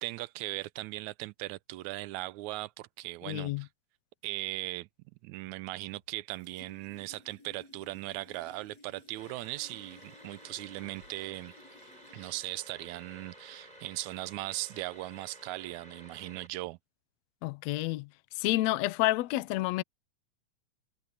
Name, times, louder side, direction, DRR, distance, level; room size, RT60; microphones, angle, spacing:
voice 1, 0.0-3.7 4.2-4.9 5.2-11.5 12.1-16.8, right 18 dB, 80° right, 1.8 m, -38 dB
voice 2, 3.2-3.7 17.4-18.1 18.4-19.8, left 17 dB, 75° left, 1.8 m, -29 dB
sound 1, 5.5-6.1 6.3-15.7, left 2 dB, 55° left, 8.4 m, -59 dB
sound 2, 9.2-16.5, right 1 dB, 15° right, 2.8 m, -53 dB
omnidirectional pair, 3.5 m